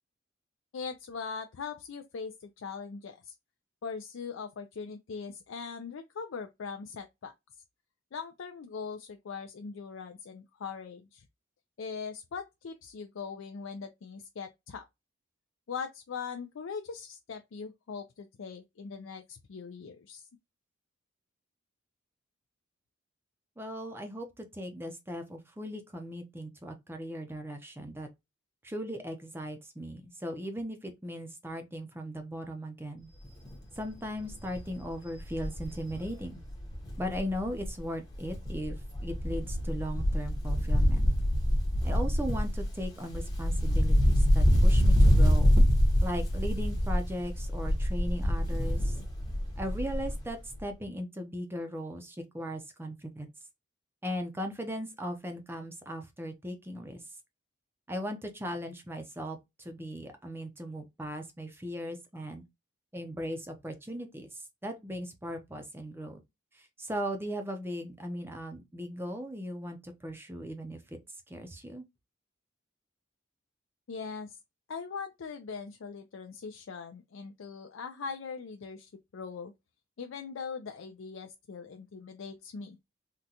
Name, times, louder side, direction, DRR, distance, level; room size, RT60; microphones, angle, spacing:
voice 1, 0.7-3.3 3.8-7.3 8.1-11.3 11.8-14.8 15.7-20.3 73.9-74.4 74.7-79.5 80.0-82.8, left 5 dB, 85° left, 0.4 m, -41 dB
voice 2, 23.6-28.1 28.6-33.1 33.7-36.4 37.0-41.1 41.8-45.5 46.0-49.0 49.6-53.3 54.0-57.0 57.9-62.4 62.9-66.2 66.5-71.0 71.3-71.8, equal, 10° right, 0.5 m, -38 dB
Wind, 33.2-33.5 33.9-34.0 34.3-37.8 38.1-50.3 50.6-50.7, equal, 20° left, 0.8 m, -26 dB
3.8 x 2.2 x 2.8 m
head